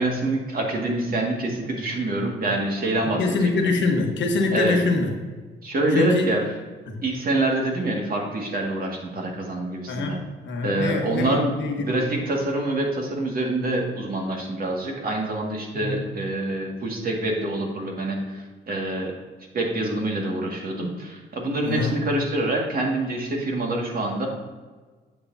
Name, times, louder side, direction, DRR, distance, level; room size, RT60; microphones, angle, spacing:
voice 1, 0.0-3.5 4.5-4.8 5.6-6.4 7.0-10.2 10.6-11.5 11.8-19.1 19.5-24.3, right 2 dB, 45° right, 0 dB, 2.0 m, -26 dB
voice 2, 3.0-5.1 5.9-6.3 6.9-7.0 9.9-11.9 15.7-16.1 21.6-22.0, left 3 dB, 65° left, 3 dB, 1.3 m, -25 dB
9.3 x 6.8 x 2.8 m, 1.4 s
cardioid pair, 90°, 20 cm